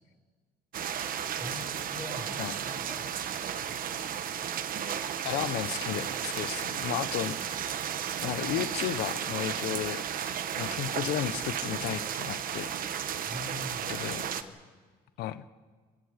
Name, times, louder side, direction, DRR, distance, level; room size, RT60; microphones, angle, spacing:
sound 1, 0.7-14.4, right 9 dB, 55° right, 1.3 m, -34 dB
voice 1, 1.3-3.8 7.0-7.6 13.1-14.5, left 2 dB, ahead, -8 dB, 5.6 m, -45 dB
voice 2, 5.2-7.4 8.2-12.8 13.9-14.3 15.2-15.4, left 13 dB, 85° left, 13 dB, 1.1 m, -34 dB
28.0 x 24.5 x 5.2 m, 1.5 s
cardioid pair, 110°, 17 cm